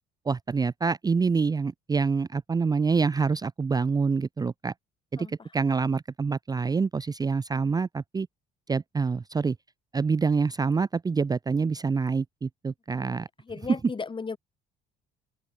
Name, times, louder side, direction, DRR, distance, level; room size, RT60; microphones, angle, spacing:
voice 1, 0.3-4.7 5.1-8.3 8.7-9.6 9.9-13.3, right 5 dB, 20° right, 0.6 m, -26 dB
voice 2, 5.2-5.5 13.0-14.4, left 4 dB, 25° left, 2.6 m, -37 dB
open air
cardioid pair, 100°, 19 cm